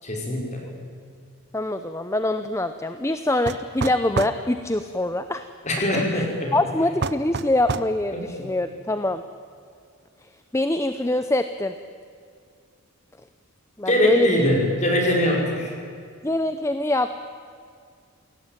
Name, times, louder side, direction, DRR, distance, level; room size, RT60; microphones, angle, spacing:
voice 1, 0.0-0.7 5.6-6.6 8.1-8.5 13.9-15.7, left 1 dB, 35° left, 0 dB, 5.5 m, -23 dB
voice 2, 1.5-5.5 5.9-6.3 6.5-9.2 10.2-11.7 13.8-14.4 16.2-17.1, left 1 dB, 15° left, 9 dB, 0.7 m, -24 dB
sound 1, 3.5-4.4 7.0-7.9, right 4 dB, 50° right, 0.8 m, -28 dB
28.0 x 18.0 x 9.2 m, 2.3 s
head